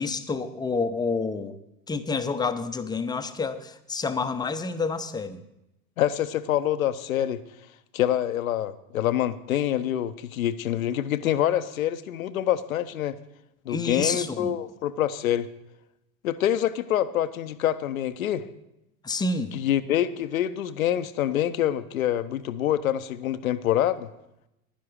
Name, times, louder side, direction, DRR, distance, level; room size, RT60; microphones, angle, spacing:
voice 1, 0.0-1.6 1.9-5.4 13.7-14.5 19.0-19.5, left 4 dB, 10° left, 9 dB, 0.6 m, -28 dB
voice 2, 6.0-7.4 7.9-13.2 13.7-15.5 16.2-18.5 19.5-24.1, left 11 dB, 75° left, 14 dB, 0.7 m, -26 dB
11.5 x 10.0 x 4.8 m, 0.87 s
figure-of-eight pair, 80°, 42 cm